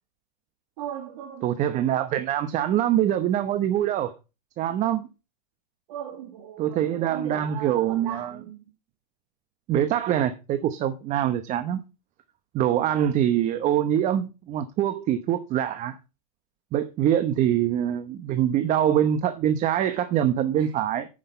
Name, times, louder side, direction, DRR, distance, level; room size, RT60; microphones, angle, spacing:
voice 1, 0.8-1.5 5.9-8.7 20.5-20.7, right 9 dB, 65° right, 2.0 m, -38 dB
voice 2, 1.4-4.1 4.6-5.1 6.6-8.3 9.7-11.8 12.5-16.0 16.7-21.1, right 10 dB, 40° right, 0.9 m, -24 dB
9.2 x 6.5 x 5.6 m
hypercardioid pair, 110°, 20 cm